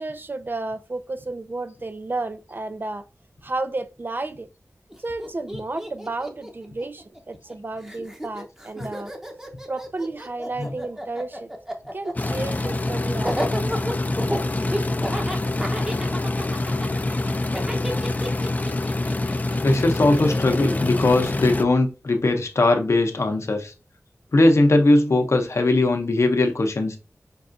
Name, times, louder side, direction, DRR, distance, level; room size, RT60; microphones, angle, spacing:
voice 1, 0.0-3.1 3.4-4.5 5.0-9.1 9.7-11.5 11.9-14.0, right 2 dB, 40° right, 0.4 m, -32 dB
Laughter, 4.9-5.0 5.2-7.5 7.8-20.9, equal, 10° right, 0.7 m, -32 dB
sound 1, 12.2-21.6, left 2 dB, 30° left, 0.3 m, -26 dB
voice 2, 19.6-23.7 24.3-27.0, left 2 dB, 65° left, 0.7 m, -19 dB
5.2 x 2.4 x 2.6 m
wide cardioid pair, 70°, 5 cm